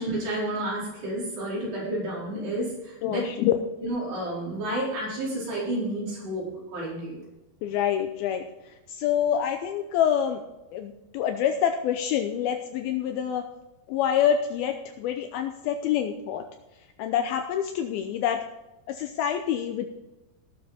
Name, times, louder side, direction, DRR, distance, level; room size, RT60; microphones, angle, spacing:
voice 1, 0.0-3.3 3.8-7.2, right 1 dB, 80° right, -6 dB, 6.8 m, -31 dB
voice 2, 3.0-3.6 7.6-10.4 10.7-13.4 13.9-16.4 17.0-18.4 18.9-19.9, left 9 dB, 80° left, 5 dB, 2.4 m, -26 dB
18.0 x 7.1 x 4.3 m, 1.0 s
omnidirectional pair, 4.7 m